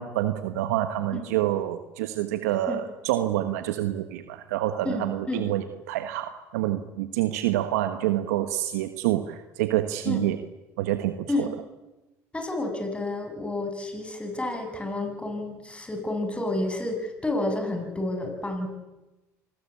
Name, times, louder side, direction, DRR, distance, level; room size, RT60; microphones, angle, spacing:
voice 1, 0.0-10.4 10.8-11.5, right 13 dB, 85° right, 9 dB, 1.3 m, -27 dB
voice 2, 4.8-5.5 10.0-10.3 11.3-11.5 12.3-18.7, left 2 dB, 15° left, 4 dB, 7.8 m, -30 dB
27.0 x 20.0 x 8.6 m, 1.1 s
supercardioid pair, 75°, 8 cm